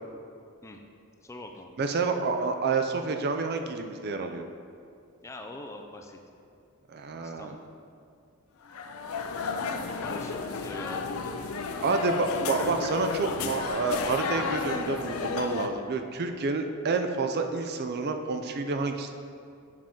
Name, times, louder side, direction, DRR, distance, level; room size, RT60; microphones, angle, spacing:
voice 1, 1.2-1.8 5.2-6.2 7.2-7.6 10.0-11.3, left 2 dB, 15° left, 3 dB, 0.4 m, -43 dB
voice 2, 1.8-4.4 6.9-7.6 11.8-19.1, right 4 dB, 45° right, 6 dB, 0.4 m, -29 dB
sound 1, 8.7-15.7, left 5 dB, 70° left, 0.5 m, -32 dB
7.3 x 5.8 x 3.8 m, 2.4 s
head